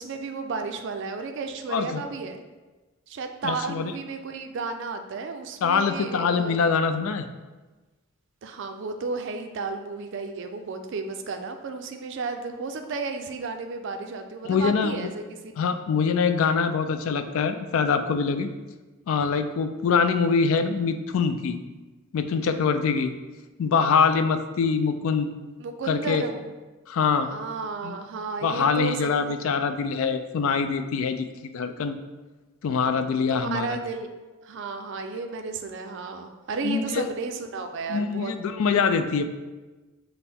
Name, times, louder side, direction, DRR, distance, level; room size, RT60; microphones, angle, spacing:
voice 1, 0.0-2.4 3.1-6.6 8.4-15.6 25.6-26.5 27.3-29.4 33.3-34.1 34.4-38.3, right 4 dB, 55° right, 6 dB, 0.4 m, -33 dB
voice 2, 1.7-2.0 3.4-3.9 5.6-7.3 14.4-15.1 15.6-18.5 19.1-21.6 22.1-23.2 23.6-25.3 25.9-26.2 26.9-27.3 27.8-28.0 28.4-32.0 32.6-33.7 36.6-37.0 37.9-39.3, left 5 dB, 65° left, 9 dB, 0.3 m, -24 dB
5.5 x 2.1 x 4.2 m, 1.2 s
head